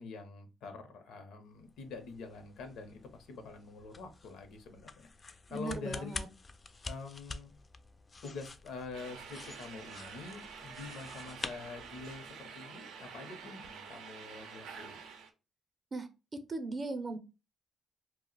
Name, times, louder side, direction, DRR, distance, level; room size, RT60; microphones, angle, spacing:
voice 1, 0.0-6.3 6.9-7.5 8.2-15.0, left 4 dB, 85° left, 7 dB, 0.6 m, -46 dB
sound 1, 1.6-12.4, left 3 dB, 30° left, 0.3 m, -48 dB
voice 2, 5.5-6.3 15.9-16.1 16.5-17.2, right 2 dB, 35° right, 9 dB, 0.5 m, -38 dB
sound 2, 8.9-15.3, right 6 dB, 90° right, 0.5 m, -48 dB
2.4 x 2.0 x 3.8 m, 0.29 s
cardioid pair, 90°, 0 cm